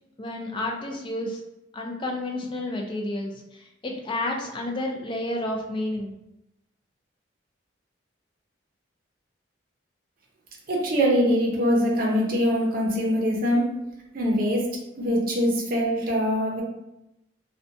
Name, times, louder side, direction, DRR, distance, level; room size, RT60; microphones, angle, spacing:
voice 1, 0.2-1.4 1.7-6.1, left 1 dB, 25° left, 0 dB, 0.3 m, -30 dB
voice 2, 10.7-13.6 14.1-16.6, equal, 45° right, -2 dB, 0.6 m, -23 dB
2.5 x 2.1 x 2.6 m, 0.89 s
head